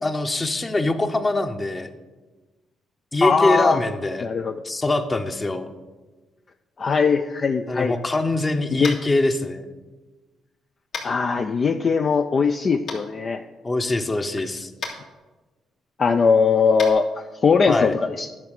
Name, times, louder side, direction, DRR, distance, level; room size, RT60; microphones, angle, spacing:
voice 1, 0.0-1.9 3.1-4.3 4.6-5.7 7.7-9.7 13.6-14.7 17.7-17.9, left 2 dB, 25° left, 8 dB, 0.9 m, -23 dB
voice 2, 3.2-3.8 4.2-4.5 6.8-7.9 8.8-8.9 11.0-13.4 16.0-18.3, left 5 dB, 45° left, 6 dB, 0.5 m, -20 dB
Tap, 8.8-9.1 10.9-11.1 12.9-13.0 14.8-14.9 16.7-16.9, left 4 dB, 70° left, 2.5 m, -31 dB
11.0 x 5.9 x 6.6 m, 1.2 s
cardioid pair, 90°, 0 cm